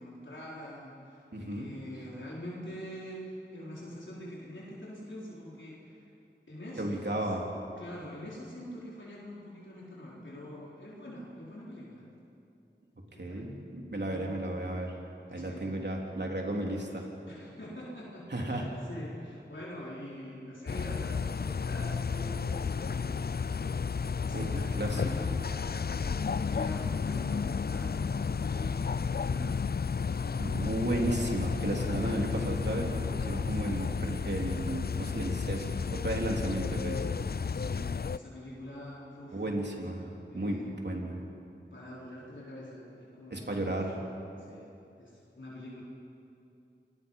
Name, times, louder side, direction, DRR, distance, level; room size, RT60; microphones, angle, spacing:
voice 1, 0.0-6.1 6.5-7.3 7.8-12.1 13.1-13.5 14.0-14.5 15.3-15.7 17.3-23.2 24.1-25.3 25.9-29.5 29.9-30.7 33.5-33.9 37.4-39.4 40.3-40.7 41.7-43.8 44.4-45.8, left 1 dB, 90° left, -6 dB, 4.4 m, -45 dB
voice 2, 1.3-1.7 6.8-7.4 13.2-14.9 15.3-17.1 18.3-18.6 24.3-25.0 25.3-25.4 30.4-37.0 39.3-40.0 40.3-41.1 43.3-44.0, right 1 dB, 65° right, 0 dB, 3.6 m, -33 dB
sound 1, 20.7-38.2, left 5 dB, 55° left, 0.5 m, -32 dB
28.0 x 21.0 x 5.6 m, 2.6 s
wide cardioid pair, 40°, 19 cm